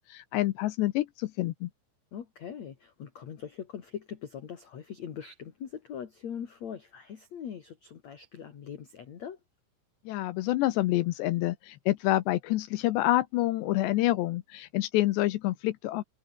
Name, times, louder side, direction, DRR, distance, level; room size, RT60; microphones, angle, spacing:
voice 1, 0.1-1.7 10.1-16.0, left 16 dB, 80° left, 2.6 m, -27 dB
voice 2, 2.1-9.4, left 8 dB, 50° left, 2.3 m, -41 dB
omnidirectional pair, 5.9 m